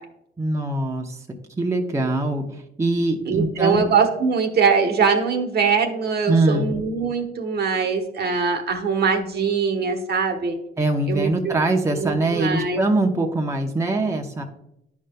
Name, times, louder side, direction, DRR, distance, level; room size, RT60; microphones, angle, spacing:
voice 1, 0.4-1.2 1.6-3.8 6.3-6.7 10.8-14.4, right 2 dB, 15° right, 2 dB, 0.8 m, -22 dB
voice 2, 3.2-10.6 11.1-11.6 11.9-12.8, right 5 dB, 55° right, 5 dB, 1.2 m, -22 dB
10.0 x 5.1 x 2.2 m, 0.81 s
cardioid pair, 90°, 20 cm